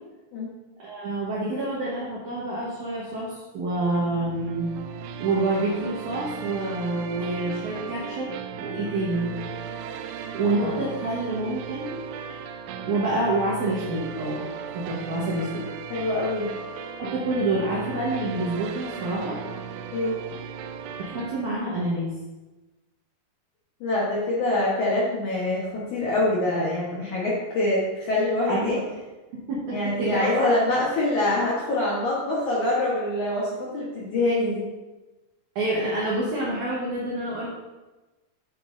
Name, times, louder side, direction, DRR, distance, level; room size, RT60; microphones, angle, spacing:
voice 1, 0.8-4.7 5.2-8.3 8.6-9.3 10.3-11.9 12.8-14.4 14.7-15.7 17.0-19.4 21.1-22.1 28.5-28.8 29.3-30.5 35.6-37.5, right 2 dB, 65° right, -6 dB, 2.1 m, -27 dB
sound 1, 4.0-21.4, right 7 dB, 80° right, 2.4 m, -36 dB
voice 2, 15.9-16.5 19.9-20.1 23.8-28.8 29.7-34.7, left 2 dB, 65° left, -6 dB, 2.1 m, -25 dB
9.3 x 7.4 x 2.6 m, 1.1 s
omnidirectional pair, 4.9 m